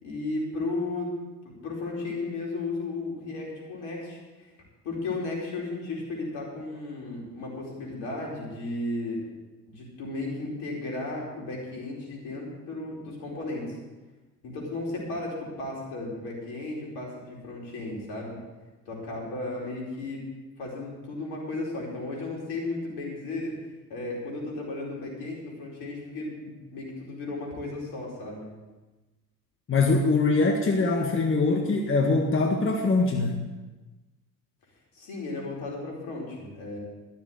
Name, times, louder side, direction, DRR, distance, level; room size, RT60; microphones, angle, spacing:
voice 1, 0.0-1.2 1.4-4.5 4.8-9.2 9.7-13.8 14.4-18.4 18.9-20.2 20.6-28.5 34.9-36.8, left 2 dB, 70° left, -2 dB, 4.7 m, -34 dB
voice 2, 29.7-33.4, left 3 dB, 30° left, 2 dB, 1.6 m, -23 dB
13.5 x 7.2 x 7.9 m, 1.2 s
hypercardioid pair, 65°, 42 cm